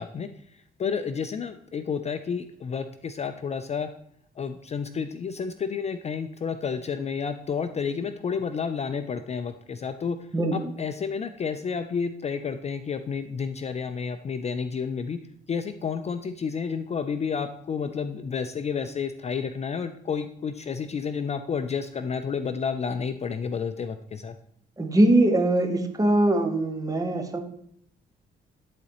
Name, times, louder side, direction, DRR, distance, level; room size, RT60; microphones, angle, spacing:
voice 1, 0.0-3.9 4.4-10.2 10.5-15.2 15.5-24.3, left 6 dB, 35° left, 9 dB, 0.4 m, -30 dB
voice 2, 24.8-27.4, right 1 dB, 15° right, 5 dB, 1.0 m, -22 dB
11.0 x 4.1 x 2.9 m, 0.68 s
cardioid pair, 90°, 20 cm